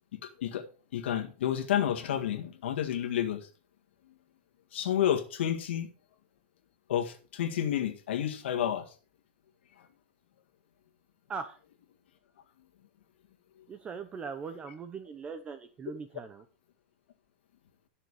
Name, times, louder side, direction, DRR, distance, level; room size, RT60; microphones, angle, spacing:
voice 1, 0.2-0.6 0.9-3.4 4.7-5.9 6.9-8.8, left 10 dB, 75° left, 1.9 m, -30 dB
voice 2, 13.7-16.5, right 5 dB, 15° right, 0.8 m, -40 dB
12.5 x 6.6 x 4.9 m
supercardioid pair, 155°, 6 cm